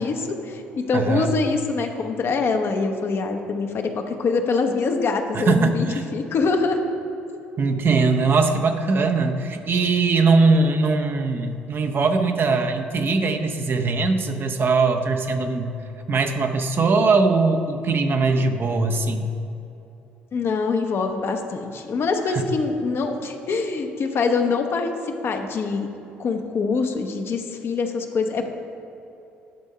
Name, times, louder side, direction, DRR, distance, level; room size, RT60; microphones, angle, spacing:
voice 1, 0.0-5.9 6.1-6.8 20.3-25.9 26.2-28.5, left 4 dB, 50° left, 5 dB, 0.8 m, -24 dB
voice 2, 0.9-1.3 5.3-6.0 7.6-15.7 16.1-19.2 22.3-22.4, right 3 dB, 45° right, 5 dB, 0.7 m, -21 dB
10.5 x 3.7 x 5.5 m, 2.9 s
hypercardioid pair, 50°, 5 cm